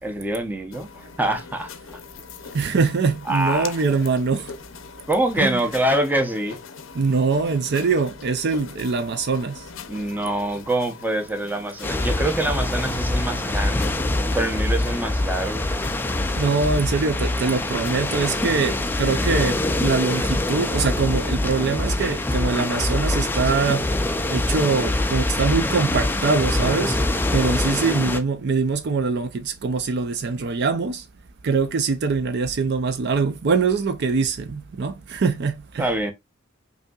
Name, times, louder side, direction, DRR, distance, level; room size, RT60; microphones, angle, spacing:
voice 1, 0.0-2.0 3.2-3.7 5.1-6.6 9.9-13.9 14.3-15.7 35.8-36.1, right 1 dB, 10° right, 0.7 m, -25 dB
sound 1, 0.7-18.1, left 5 dB, 75° left, 0.6 m, -42 dB
voice 2, 2.5-4.5 5.4-5.6 6.9-9.6 16.4-23.8 24.3-27.0 27.3-31.0 31.4-35.9, right 4 dB, 55° right, 0.5 m, -23 dB
sound 2, 11.8-28.2, left 2 dB, 10° left, 0.4 m, -24 dB
5.4 x 2.7 x 2.3 m
head